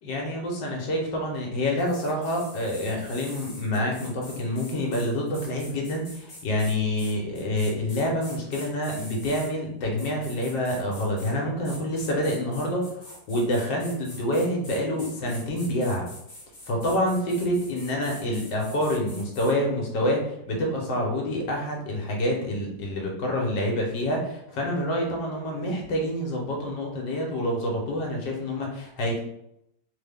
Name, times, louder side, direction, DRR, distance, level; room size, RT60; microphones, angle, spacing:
voice 1, 0.0-16.1 16.7-29.2, left 1 dB, 70° left, -1 dB, 1.4 m, -27 dB
sound 1, 1.8-9.5 10.0-11.3 11.6-19.5, left 1 dB, 40° left, 0.9 m, -45 dB
3.5 x 2.1 x 3.4 m, 0.78 s
omnidirectional pair, 2.1 m